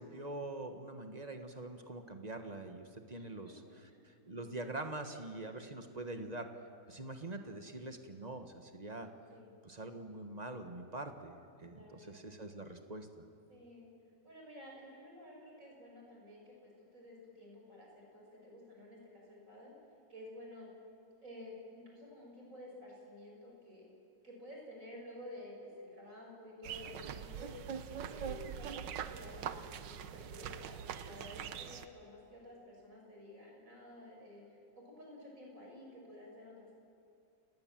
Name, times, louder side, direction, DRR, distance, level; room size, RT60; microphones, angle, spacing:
voice 1, 0.0-6.5 6.9-9.1 9.6-13.3, right 2 dB, 25° right, 7 dB, 1.4 m, -44 dB
voice 2, 3.1-3.5 3.9-4.1 9.3-9.5 11.6-12.3 13.5-13.9 14.2-19.7 20.1-20.7 21.2-23.9 24.2-27.5 28.0-36.8, left 1 dB, 45° right, -1 dB, 6.5 m, -52 dB
sound 1, 26.6-31.9, right 8 dB, 75° right, 1.6 m, -43 dB
30.0 x 19.0 x 7.6 m, 2.4 s
omnidirectional pair, 2.0 m